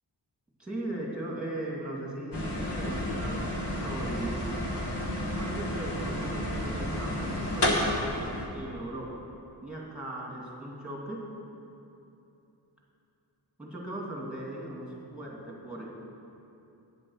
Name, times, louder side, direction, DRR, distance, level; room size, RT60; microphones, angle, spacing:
voice 1, 0.6-4.5 5.4-9.2 9.6-11.2 13.6-15.9, right 1 dB, ahead, -3 dB, 2.3 m, -38 dB
sound 1, 2.3-8.5, left 1 dB, 65° left, 1.6 m, -31 dB
9.3 x 7.5 x 6.3 m, 2.8 s
wide cardioid pair, 90°, 44 cm